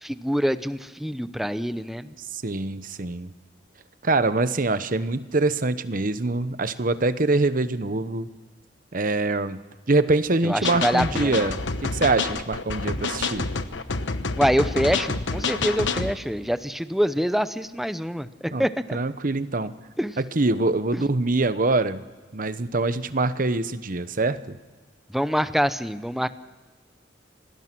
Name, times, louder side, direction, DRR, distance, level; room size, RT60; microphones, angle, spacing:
voice 1, 0.0-2.1 10.4-11.4 14.4-19.0 20.0-20.2 20.9-21.0 25.1-26.3, equal, ahead, 12 dB, 0.7 m, -25 dB
voice 2, 2.3-3.3 4.0-8.3 8.9-9.6 9.9-13.4 18.5-18.6 18.9-19.7 20.4-22.0 22.3-24.6, right 2 dB, 45° right, 12 dB, 1.0 m, -24 dB
sound 1, 10.6-16.1, left 4 dB, 80° left, 1.1 m, -28 dB
26.0 x 19.0 x 6.1 m, 1.3 s
head